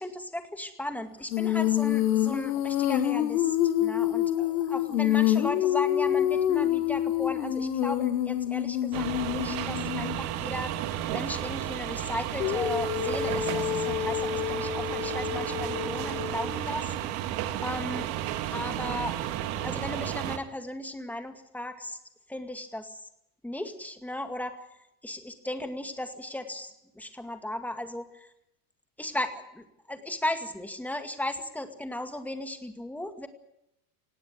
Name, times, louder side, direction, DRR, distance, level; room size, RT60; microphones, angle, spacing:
voice 1, 0.0-10.8 11.1-16.9 17.3-18.1 18.5-19.1 19.6-22.0 22.3-23.1 23.4-24.7 25.0-28.3 29.0-33.3, left 1 dB, 5° left, 6 dB, 2.1 m, -36 dB
Female singing, 1.3-10.2 12.4-16.6, left 11 dB, 85° left, 2.5 m, -27 dB
sound 1, 8.9-20.4, right 12 dB, 60° right, 2.3 m, -33 dB
19.0 x 16.5 x 9.6 m, 0.81 s
supercardioid pair, 145°, 47 cm